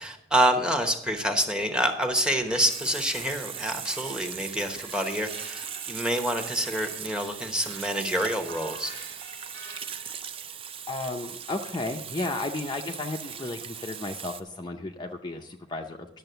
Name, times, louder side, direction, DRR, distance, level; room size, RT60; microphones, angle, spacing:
voice 1, 0.0-8.9, equal, 5° right, 6 dB, 1.0 m, -27 dB
sound 1, 2.1-10.2, right 3 dB, 90° right, 2.5 m, -47 dB
Water tap faucet / Sink (filling or washing), 2.7-14.4, right 8 dB, 30° right, 0.5 m, -39 dB
voice 2, 10.9-16.1, left 2 dB, 25° left, 2 dB, 0.5 m, -33 dB
10.5 x 7.0 x 6.7 m, 0.80 s
head